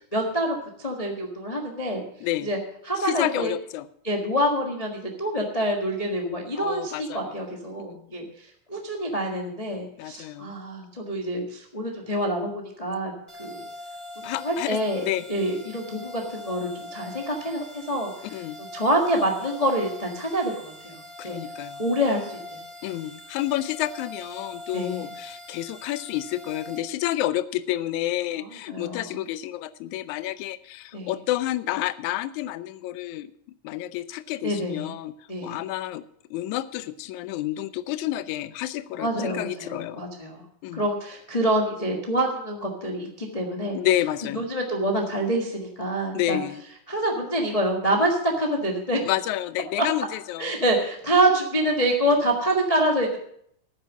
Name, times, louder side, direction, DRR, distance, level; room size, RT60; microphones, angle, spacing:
voice 1, 0.1-2.0 2.4-2.6 2.8-3.5 4.0-8.2 8.7-13.1 13.4-13.6 14.2-18.1 18.7-21.0 21.2-21.4 21.8-22.6 24.7-25.1 28.7-29.2 30.9-31.1 34.4-34.9 35.3-35.6 39.0-40.4 40.7-43.8 44.3-46.4 46.9-49.0 50.4-53.2, right 1 dB, 25° left, 0 dB, 0.8 m, -26 dB
voice 2, 3.0-3.9 6.6-7.4 7.9-8.1 10.0-10.5 14.2-15.2 18.3-18.6 21.2-21.8 22.8-33.3 33.6-35.1 35.4-36.0 36.3-40.0 40.6-40.9 43.7-44.5 46.1-46.6 49.0-50.6, left 14 dB, 80° left, 15 dB, 1.9 m, -29 dB
sound 1, 13.3-26.8, left 1 dB, 10° right, 2.6 m, -42 dB
12.0 x 9.2 x 6.1 m, 0.69 s
omnidirectional pair, 3.5 m